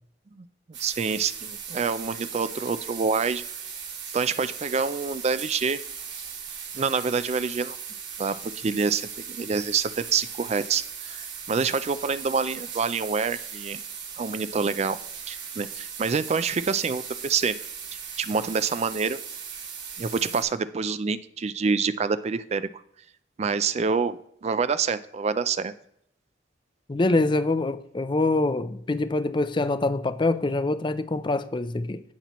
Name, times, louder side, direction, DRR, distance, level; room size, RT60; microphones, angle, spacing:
sound 1, 0.7-20.4, right 7 dB, 85° right, 3.4 m, -38 dB
voice 1, 0.8-3.4 4.1-5.8 6.7-7.8 8.2-13.8 14.2-15.0 15.3-17.5 17.9-19.2 20.0-22.7 23.4-25.7, right 5 dB, 35° right, 0.4 m, -27 dB
voice 2, 26.9-32.0, left 2 dB, 25° left, 0.5 m, -25 dB
16.0 x 5.8 x 3.0 m
head